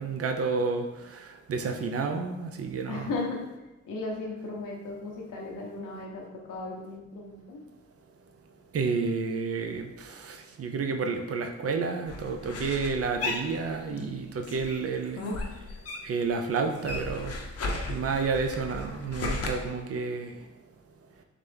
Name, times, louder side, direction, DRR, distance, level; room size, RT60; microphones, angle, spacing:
voice 1, 0.0-3.1 8.7-15.2 16.0-17.4 17.9-20.3, right 4 dB, 50° right, 5 dB, 0.6 m, -30 dB
voice 2, 2.9-3.3 3.8-7.6, left 3 dB, 85° left, -1 dB, 1.0 m, -36 dB
sound 1, 12.1-14.1 14.4-16.3 16.5-19.5, left 2 dB, 50° left, 0.8 m, -35 dB
4.0 x 3.1 x 3.4 m, 1.0 s
supercardioid pair, 50°, 31 cm